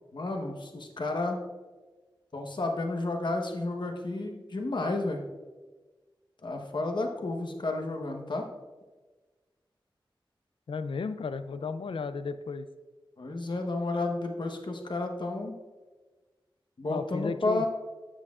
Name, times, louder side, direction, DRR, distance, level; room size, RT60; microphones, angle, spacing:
voice 1, 0.1-1.4 2.3-5.2 6.4-8.5 13.2-15.6 16.8-17.7, left 2 dB, 60° left, 3 dB, 1.1 m, -31 dB
voice 2, 10.7-12.7 16.9-17.7, left 5 dB, 80° left, 12 dB, 0.4 m, -34 dB
9.9 x 7.6 x 2.4 m, 1.3 s
wide cardioid pair, 65°, 9 cm